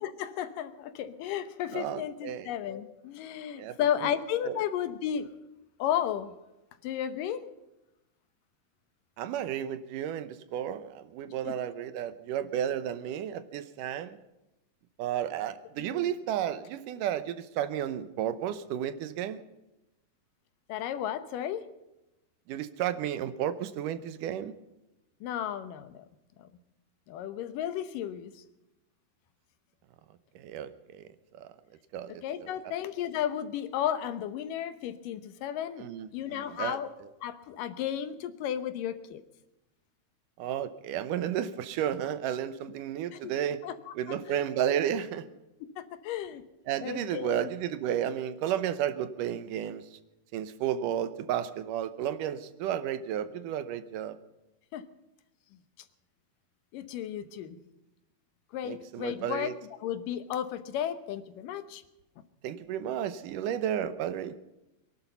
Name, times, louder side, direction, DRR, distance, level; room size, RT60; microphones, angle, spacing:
voice 1, 0.0-5.3 5.8-6.3 6.8-7.5 11.5-11.6 15.8-16.1 20.7-21.6 25.2-26.1 26.4-26.5 27.1-28.4 32.1-35.9 36.1-36.9 37.2-39.2 43.1-43.3 43.6-44.4 45.8-46.4 46.8-47.5 54.7-54.8 56.7-57.6 58.5-59.5 59.8-61.8, left 10 dB, 85° left, 11 dB, 2.7 m, -33 dB
voice 2, 1.7-2.5 3.6-3.8 4.5-4.6 9.2-14.2 15.0-19.4 22.5-24.5 30.4-31.1 31.4-31.5 31.9-32.1 35.8-36.8 40.4-43.6 44.0-45.3 46.7-49.9 50.3-54.2 58.6-59.5 62.4-64.3, right 10 dB, 80° right, 12 dB, 2.5 m, -32 dB
23.0 x 11.5 x 5.5 m, 0.97 s
omnidirectional pair, 3.7 m